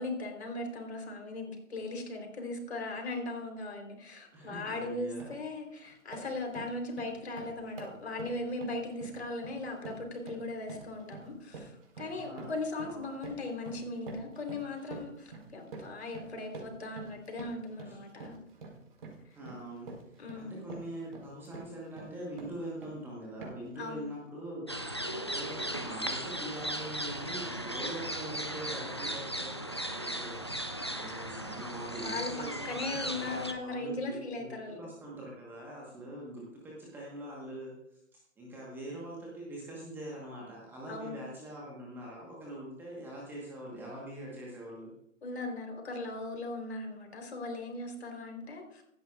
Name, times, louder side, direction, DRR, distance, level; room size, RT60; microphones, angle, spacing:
voice 1, 0.0-18.3 20.2-20.8 23.8-24.1 32.0-34.9 40.9-41.2 45.2-48.8, left 2 dB, 50° left, 3 dB, 3.8 m, -38 dB
voice 2, 4.3-5.3 12.1-12.5 12.9-13.1 17.8-18.0 19.4-30.6 30.9-34.5 34.8-44.9, right 1 dB, 5° right, -4 dB, 1.2 m, -43 dB
sound 1, 4.4-4.6 5.0-5.4 5.8-23.0 23.4-23.8, right 4 dB, 45° right, 4.3 m, -48 dB
sound 2, 24.7-33.5, equal, 20° left, 0.4 m, -37 dB
16.0 x 13.5 x 2.4 m, 0.74 s
figure-of-eight pair, 140°, 40 cm